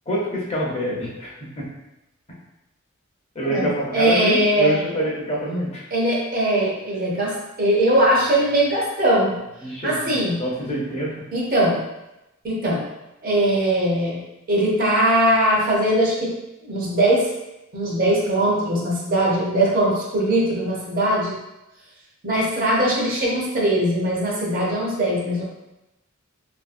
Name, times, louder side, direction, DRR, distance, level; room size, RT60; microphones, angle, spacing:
voice 1, 0.1-1.6 3.3-5.8 9.6-11.1, equal, 30° left, -4 dB, 0.6 m, -26 dB
voice 2, 3.9-4.8 5.9-9.4 9.8-10.4 11.3-11.8 12.4-12.9 13.2-14.2 14.5-16.3 16.6-17.3 17.7-21.4 22.2-25.4, right 1 dB, 45° right, -4 dB, 0.7 m, -20 dB
2.6 x 2.5 x 2.5 m, 0.93 s
head